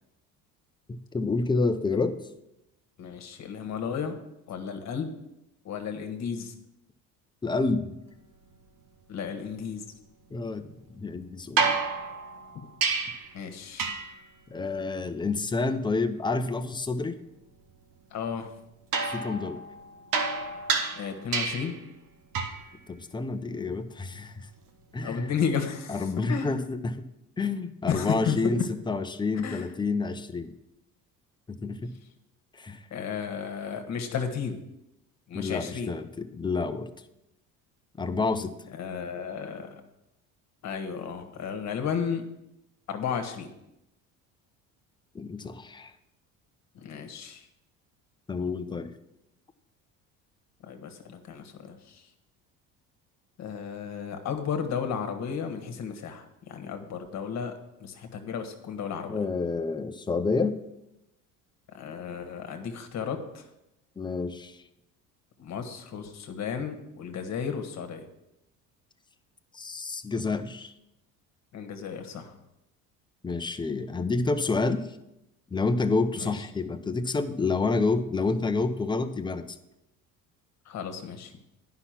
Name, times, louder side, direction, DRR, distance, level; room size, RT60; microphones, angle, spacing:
voice 1, 0.9-2.2 7.4-8.0 10.3-11.8 14.5-17.2 19.1-19.6 22.9-24.5 24.9-25.3 25.9-27.0 27.4-28.6 28.9-30.5 31.5-31.9 32.6-32.8 35.3-36.9 38.0-38.5 45.1-45.9 48.3-48.9 59.1-60.6 64.0-64.6 69.5-70.7 73.2-74.9 75.5-79.5, left 3 dB, 15° left, 8 dB, 0.7 m, -29 dB
voice 2, 3.0-4.1 4.5-5.1 5.6-6.5 9.1-9.9 12.5-12.6 13.3-13.9 18.1-18.5 20.9-21.8 25.0-26.5 27.9-28.7 29.4-29.7 32.9-34.6 35.3-35.9 38.7-39.7 40.6-42.2 42.9-43.5 46.7-47.5 50.6-52.1 53.4-57.5 57.8-59.2 61.7-63.4 65.4-68.0 71.5-72.3 76.2-76.3 80.6-81.3, left 7 dB, 50° left, 6 dB, 1.5 m, -33 dB
sound 1, 11.6-13.3 13.8-14.2 18.9-21.8 22.3-22.7 24.7-24.8, right 5 dB, 70° right, 1.4 m, -29 dB
9.9 x 5.8 x 5.9 m, 0.86 s
cardioid pair, 110°, 35 cm